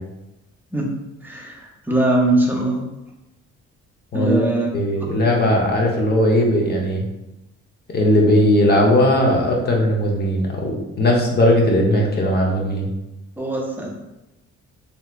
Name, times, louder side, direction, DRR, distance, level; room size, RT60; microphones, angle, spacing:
voice 1, 1.2-2.9 4.1-4.7 5.0-5.1 13.4-13.9, right 2 dB, 5° right, -1 dB, 0.7 m, -21 dB
voice 2, 4.1-4.5 4.7-7.0 7.9-12.9, left 1 dB, 35° left, -1 dB, 0.9 m, -18 dB
3.1 x 2.9 x 2.4 m, 0.94 s
cardioid pair, 90°, 30 cm